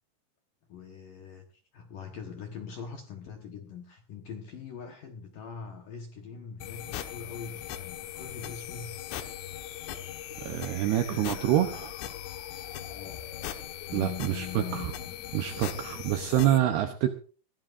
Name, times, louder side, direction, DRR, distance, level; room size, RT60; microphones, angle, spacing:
voice 1, 0.7-9.1 9.9-10.2 11.1-11.6 12.9-13.3 13.8-14.9 16.5-16.6, left 6 dB, 70° left, 3 dB, 2.1 m, -43 dB
sound 1, 6.6-16.6, left 11 dB, 85° left, 3.9 m, -39 dB
voice 2, 10.4-11.9 13.9-14.9 15.3-17.2, right 12 dB, 80° right, 6 dB, 2.4 m, -27 dB
20.0 x 17.0 x 2.5 m, 0.39 s
omnidirectional pair, 5.7 m